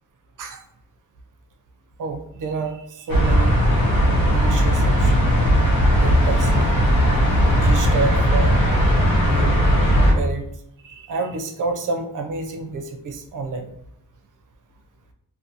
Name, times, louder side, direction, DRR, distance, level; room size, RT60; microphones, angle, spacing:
voice 1, 2.0-3.5 4.3-5.2 6.0-6.7 7.4-8.6 9.2-9.6 10.1-10.5 10.8-13.7, right 4 dB, 65° right, 5 dB, 0.5 m, -29 dB
sound 1, 3.1-10.1, equal, 90° left, 0.8 m, -17 dB
2.5 x 2.2 x 2.6 m, 0.73 s
wide cardioid pair, 115°, 34 cm